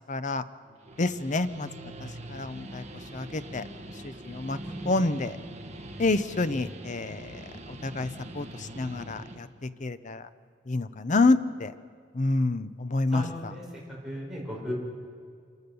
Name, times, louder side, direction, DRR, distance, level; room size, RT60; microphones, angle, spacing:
voice 1, 0.1-0.4 1.0-1.7 2.0-2.8 3.1-3.6 4.0-4.6 4.9-5.3 6.0-7.4 7.8-8.1 8.3-10.2 10.7-11.7 12.1-13.2, left 3 dB, 40° left, 13 dB, 0.7 m, -28 dB
Guitar, 0.7-9.4, right 1 dB, 35° right, 1.7 m, -43 dB
voice 2, 4.6-4.9 13.1-13.6 14.0-14.7, equal, 5° right, -5 dB, 5.7 m, -36 dB
27.0 x 14.5 x 6.9 m, 2.2 s
head